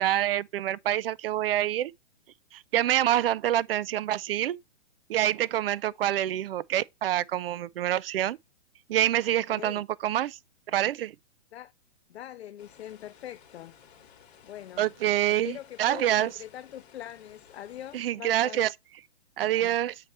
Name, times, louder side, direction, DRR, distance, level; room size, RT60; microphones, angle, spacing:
voice 1, 0.0-1.9 2.5-4.6 5.1-8.4 8.9-10.4 10.7-11.1 14.8-16.3 17.9-18.7 19.4-19.9, right 12 dB, 60° right, 0.4 m, -26 dB
voice 2, 9.5-9.8 11.5-11.7 12.1-13.8 14.4-14.9 15.4-18.7 19.4-19.8, left 12 dB, 70° left, 0.5 m, -43 dB
sound 1, 12.6-18.0, left 8 dB, 40° left, 2.3 m, -56 dB
7.6 x 4.2 x 3.2 m
hypercardioid pair, 160°, 33 cm